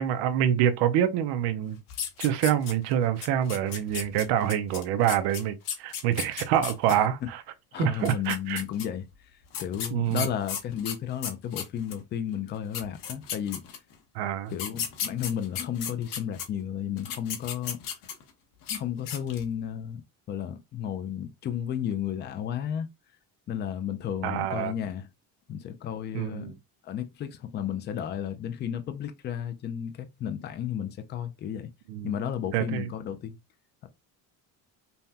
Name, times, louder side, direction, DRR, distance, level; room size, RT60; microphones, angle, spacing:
voice 1, 0.0-1.8 2.2-7.4 7.8-8.6 9.9-10.3 14.1-14.5 24.2-24.7 26.1-26.5 31.9-32.1 32.5-32.9, right 10 dB, 85° right, 0.7 m, -26 dB
sound 1, 1.9-2.9 3.2-6.9 7.9-8.8 9.5-12.0 12.5-12.6 12.7-13.9 14.5-16.4 17.0-18.3 18.6-18.8 19.1-19.5, left 8 dB, 60° left, 1.1 m, -34 dB
voice 2, 6.9-7.3 7.7-9.1 9.6-13.8 14.5-17.8 18.7-20.0 20.3-22.9 23.5-25.1 25.5-26.5 26.8-31.7 32.0-33.4, left 9 dB, 30° left, 0.4 m, -33 dB
5.5 x 2.2 x 2.8 m
cardioid pair, 170°, 38 cm